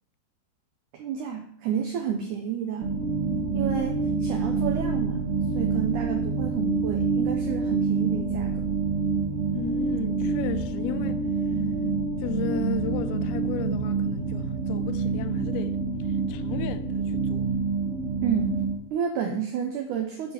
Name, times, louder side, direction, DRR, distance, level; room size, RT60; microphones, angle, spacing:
voice 1, 0.9-2.9 3.5-8.8 18.2-18.6 18.9-20.3, right 8 dB, 80° right, 1.8 m, -30 dB
sound 1, 2.8-18.8, right 4 dB, 35° right, 2.4 m, -27 dB
voice 2, 9.5-11.3 12.2-15.8 16.1-17.5, left 8 dB, 80° left, 2.6 m, -35 dB
8.9 x 5.1 x 6.4 m
omnidirectional pair, 4.7 m